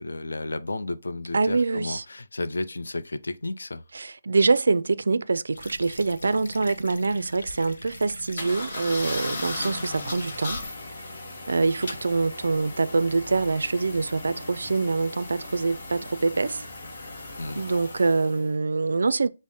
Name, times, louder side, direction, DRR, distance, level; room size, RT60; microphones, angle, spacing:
voice 1, 0.0-3.8 17.4-17.6, left 2 dB, 90° left, 0.5 m, -32 dB
voice 2, 1.3-2.0 3.9-10.6 11.5-16.7 17.5-19.3, right 3 dB, 75° right, 0.3 m, -25 dB
sound 1, 5.5-10.6, left 2 dB, 70° left, 0.8 m, -42 dB
sound 2, 8.4-18.5, left 2 dB, 40° left, 1.1 m, -37 dB
5.3 x 2.0 x 3.6 m
hypercardioid pair, 170°, 0 cm